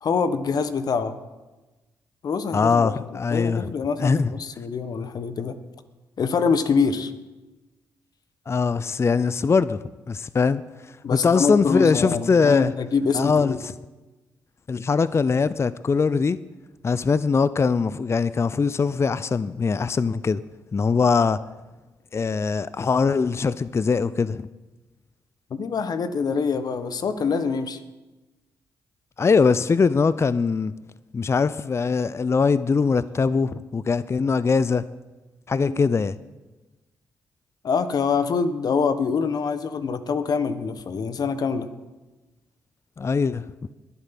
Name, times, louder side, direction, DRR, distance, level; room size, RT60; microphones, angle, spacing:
voice 1, 0.0-1.1 2.2-3.0 3.3-5.6 6.2-7.1 11.0-13.6 25.5-27.8 35.6-35.7 37.6-41.7, left 5 dB, 55° left, 12 dB, 1.2 m, -25 dB
voice 2, 2.5-3.7 4.0-4.3 8.5-9.8 10.1-10.6 11.1-12.7 13.1-13.7 14.7-16.4 16.8-20.4 20.7-21.4 22.1-24.5 29.2-30.7 31.1-34.8 35.5-36.2 43.0-43.4, left 5 dB, 35° left, 16 dB, 0.6 m, -21 dB
20.5 x 8.2 x 6.0 m, 1.2 s
hypercardioid pair, 45°, 8 cm